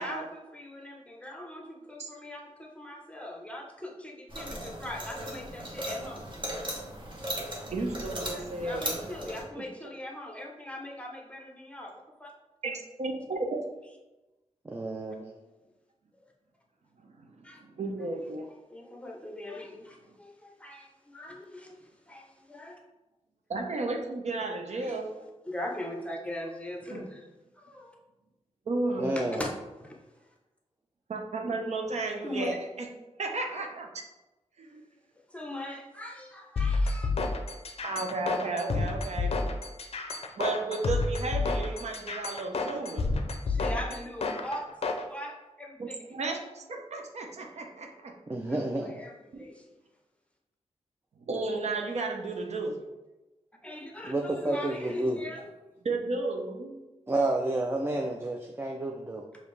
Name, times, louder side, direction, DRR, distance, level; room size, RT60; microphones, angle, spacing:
voice 1, 0.0-6.3 8.3-11.9 12.2-12.3 17.4-17.6 18.7-22.8 24.8-25.0 25.5-27.3 27.6-27.9 29.0-29.5 29.8-30.0 32.2-32.6 35.3-37.1 38.6-38.7 43.5-44.7 45.1-46.0 48.5-49.7 53.6-55.5, left 1 dB, 10° left, 0 dB, 0.7 m, -40 dB
sound 1, 4.3-9.4, right 1 dB, 40° right, 1.1 m, -37 dB
voice 2, 7.7-9.0 9.6-9.7 12.6-13.6 17.0-18.5 23.5-25.1 26.9-27.0 28.7-29.1 31.1-32.9 33.2-33.9 34.6-34.8 37.8-39.5 40.4-43.2 45.8-48.1 49.3-49.5 51.2-52.8 55.8-56.7, right 3 dB, 65° right, 2 dB, 0.6 m, -33 dB
voice 3, 14.6-15.4 29.0-29.4 48.3-49.0 54.0-55.2 57.1-59.2, right 2 dB, 20° right, 1 dB, 0.4 m, -30 dB
sound 2, 36.6-45.0, left 3 dB, 55° left, 0.5 m, -30 dB
5.0 x 2.7 x 3.2 m, 1.0 s
wide cardioid pair, 80°, 12 cm